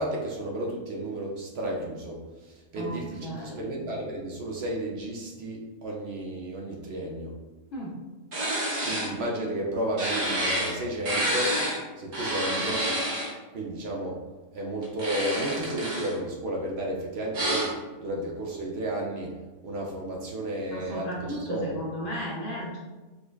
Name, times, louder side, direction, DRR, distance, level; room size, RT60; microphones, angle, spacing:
voice 1, 0.0-7.3 8.8-11.6 12.0-12.9 13.5-14.2 14.5-19.4 19.6-21.8, right 1 dB, 65° right, -2 dB, 0.6 m, -32 dB
voice 2, 2.7-3.7 7.7-8.0 20.7-22.8, equal, 70° left, -5 dB, 0.5 m, -35 dB
sound 1, 8.3-9.1 10.0-10.7 11.0-11.8 12.1-13.3 14.8-16.1 17.3-17.7, right 1 dB, 45° right, 0.9 m, -28 dB
4.9 x 2.2 x 2.2 m, 1.2 s
omnidirectional pair, 1.5 m